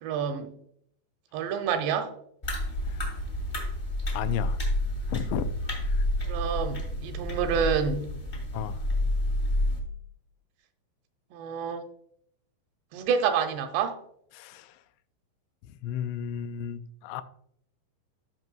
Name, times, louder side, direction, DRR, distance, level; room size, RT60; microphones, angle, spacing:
voice 1, 0.0-0.5 1.3-2.1 6.3-8.1 11.3-11.8 12.9-14.0, right 7 dB, 85° right, 2.6 m, -28 dB
sound 1, 2.4-9.8, left 1 dB, 45° left, 0.8 m, -29 dB
voice 2, 4.1-4.6 5.1-5.5 5.8-6.1 8.5-8.9 14.3-14.8 15.8-17.2, left 9 dB, 85° left, 2.6 m, -33 dB
13.5 x 5.9 x 2.3 m
omnidirectional pair, 5.3 m